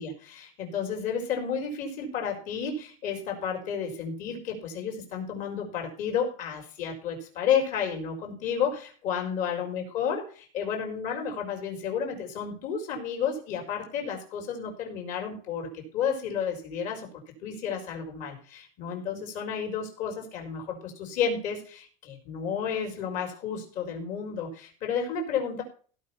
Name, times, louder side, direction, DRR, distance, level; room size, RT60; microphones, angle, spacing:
voice 1, 0.0-17.1 17.4-25.6, left 7 dB, 40° left, 2 dB, 4.7 m, -31 dB
16.5 x 5.7 x 5.9 m, 0.40 s
cardioid pair, 175°, 19 cm